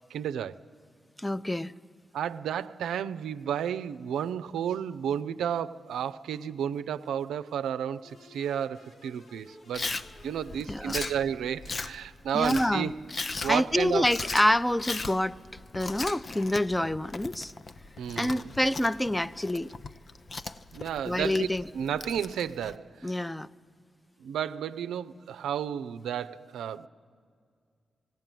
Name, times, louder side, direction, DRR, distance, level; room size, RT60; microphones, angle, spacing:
voice 1, 0.1-0.6 2.1-12.9 13.4-14.1 18.0-18.5 20.7-21.5 21.7-23.2 24.2-26.9, right 9 dB, 90° right, 12 dB, 0.4 m, -32 dB
voice 2, 1.2-1.7 10.7-11.0 12.3-12.9 13.5-15.4 15.7-17.5 18.2-19.7 21.1-21.6 23.0-23.5, left 1 dB, 15° left, 15 dB, 0.6 m, -27 dB
sound 1, 8.0-11.6, left 1 dB, 65° left, 2.4 m, -56 dB
Chewing mastication, 9.7-22.8, left 3 dB, 50° left, 0.7 m, -38 dB
18.5 x 17.0 x 9.0 m, 2.1 s
supercardioid pair, 45°, 0 cm